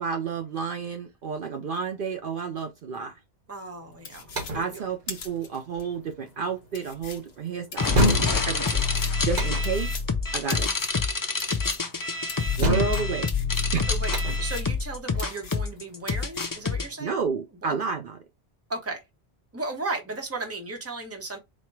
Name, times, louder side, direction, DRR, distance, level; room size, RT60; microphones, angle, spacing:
voice 1, 0.0-3.2 4.5-8.9 9.2-9.9 10.3-10.7 12.6-13.3 13.7-13.8 17.0-18.2, right 6 dB, 60° right, 0.7 m, -31 dB
voice 2, 3.5-4.3 4.7-4.8 12.6-12.8 13.9-17.2 17.6-17.8 18.7-19.0 19.5-21.4, right 2 dB, 15° right, 0.8 m, -35 dB
sound 1, 3.8-17.1, equal, 45° right, 1.1 m, -31 dB
sound 2, 4.0-5.8 6.3-6.4 6.7-11.9 12.3-14.9 15.2-15.8 16.1-16.6, left 5 dB, 60° left, 0.9 m, -42 dB
sound 3, 7.8-16.9, left 4 dB, 35° left, 0.3 m, -27 dB
4.3 x 2.1 x 4.4 m
omnidirectional pair, 1.1 m